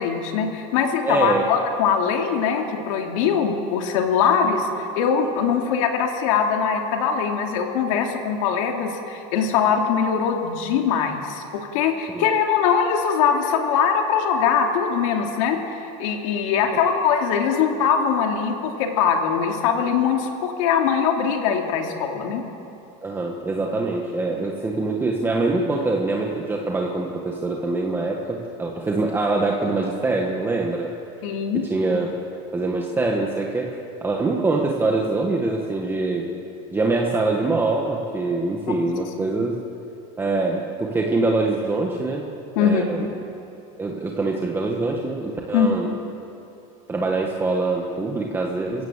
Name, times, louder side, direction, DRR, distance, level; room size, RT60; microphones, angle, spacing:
voice 1, 0.0-11.4 11.7-22.4 31.2-31.6 42.6-42.8 45.5-45.8, left 7 dB, 80° left, 3 dB, 2.9 m, -22 dB
voice 2, 1.0-1.4 12.1-12.3 16.7-16.8 23.0-30.9 31.7-32.1 32.5-36.3 36.7-39.6 40.2-42.2 42.5-43.1 43.8-45.9 46.9-48.8, right 3 dB, 15° right, 0 dB, 1.6 m, -24 dB
26.0 x 16.5 x 7.5 m, 2.8 s
supercardioid pair, 145°, 17 cm